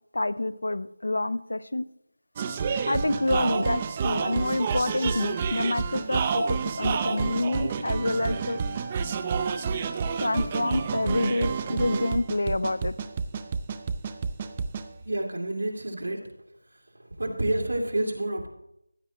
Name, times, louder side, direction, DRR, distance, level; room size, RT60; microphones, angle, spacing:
voice 1, 0.1-1.8 2.8-8.6 10.2-12.9, left 2 dB, 70° left, 16 dB, 0.6 m, -27 dB
sound 1, 2.4-14.9, right 5 dB, 20° right, 0.4 m, -29 dB
voice 2, 15.0-16.2 17.2-18.5, right 1 dB, 80° right, 1 dB, 2.5 m, -28 dB
15.0 x 8.7 x 3.0 m, 0.79 s
figure-of-eight pair, 170°, 0 cm